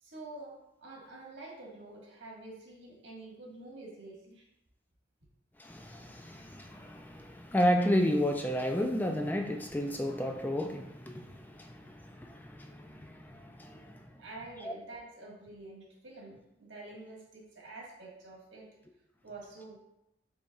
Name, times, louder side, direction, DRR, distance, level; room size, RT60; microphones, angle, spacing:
voice 1, 0.0-4.4 14.2-18.7 19.2-19.8, right 2 dB, 85° right, -3 dB, 1.5 m, -48 dB
voice 2, 5.6-14.1 14.6-14.7, equal, 10° left, 4 dB, 0.3 m, -32 dB
5.3 x 4.2 x 2.3 m, 0.84 s
head